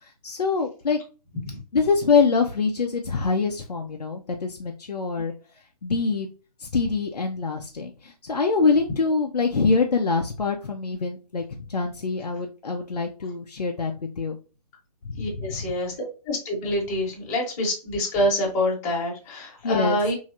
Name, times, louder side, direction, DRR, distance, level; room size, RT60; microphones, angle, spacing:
voice 1, 0.2-1.0 1.7-5.3 5.8-6.3 6.6-11.4 11.7-14.4 15.1-15.7 19.6-20.0, left 4 dB, 75° left, 2 dB, 0.6 m, -24 dB
voice 2, 15.2-15.9 16.3-20.1, left 1 dB, 25° left, -2 dB, 1.1 m, -26 dB
3.2 x 2.7 x 2.6 m, 0.32 s
figure-of-eight pair, 135°, 21 cm